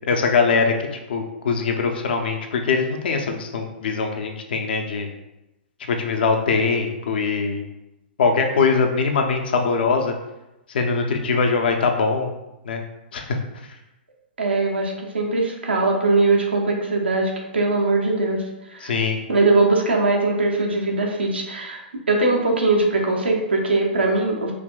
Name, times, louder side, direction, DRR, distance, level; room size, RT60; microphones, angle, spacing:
voice 1, 0.1-0.7 1.1-5.1 5.9-7.6 8.2-10.1 10.7-12.3 12.7-12.8 13.1-13.4 18.8-19.2, left 4 dB, 60° left, 4 dB, 0.6 m, -22 dB
voice 2, 14.4-18.9 19.3-21.8 22.1-24.5, right 3 dB, 80° right, 0 dB, 0.8 m, -21 dB
4.9 x 2.8 x 2.2 m, 0.94 s
figure-of-eight pair, 110°, 6 cm